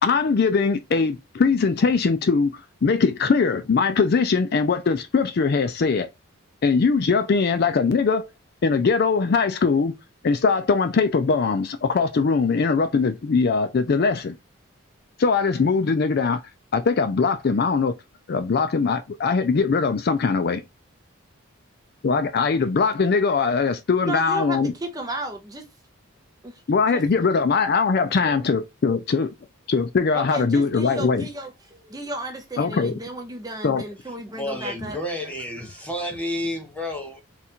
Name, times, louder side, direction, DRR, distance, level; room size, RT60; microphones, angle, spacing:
voice 1, 0.0-6.1 6.6-8.3 8.6-9.9 10.2-14.3 15.2-16.4 16.7-17.9 18.3-20.6 22.0-24.7 26.7-29.3 29.7-31.3 32.6-32.9 33.6-33.8, left 4 dB, 45° left, 0.4 m, -21 dB
voice 2, 24.1-25.6 26.4-26.6 26.9-27.0 28.1-28.4 30.1-35.8, right 1 dB, 15° right, 0.6 m, -34 dB
voice 3, 34.3-37.2, left 1 dB, 5° left, 1.0 m, -30 dB
4.0 x 2.4 x 4.2 m
head